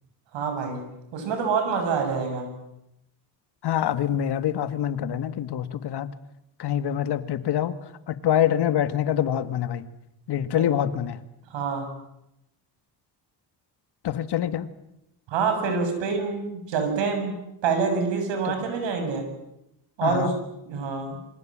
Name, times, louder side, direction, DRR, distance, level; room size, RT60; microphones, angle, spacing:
voice 1, 0.3-0.8 1.1-2.5 10.6-10.7 11.5-11.9 15.3-19.3 20.0-20.3 20.7-21.2, right 5 dB, 90° right, 6 dB, 7.4 m, -26 dB
voice 2, 3.6-6.1 6.6-7.8 8.1-9.9 10.3-11.2 14.0-14.7 20.0-20.4, left 10 dB, 65° left, 11 dB, 1.9 m, -25 dB
27.5 x 25.0 x 7.5 m, 0.85 s
cardioid pair, 125°, 43 cm